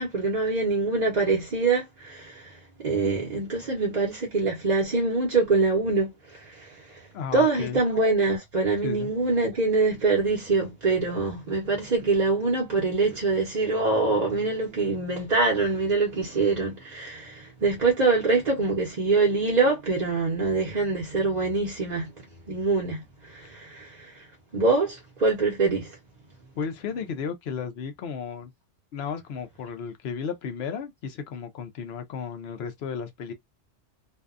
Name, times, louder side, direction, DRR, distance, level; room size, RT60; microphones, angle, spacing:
voice 1, 0.0-7.1 7.3-22.1 22.5-24.3 24.5-26.0, right 3 dB, 40° right, 0.7 m, -24 dB
voice 2, 7.1-7.8 8.8-9.1 26.6-28.5 28.9-33.3, left 6 dB, 60° left, 0.8 m, -34 dB
2.6 x 2.2 x 2.4 m
omnidirectional pair, 1.3 m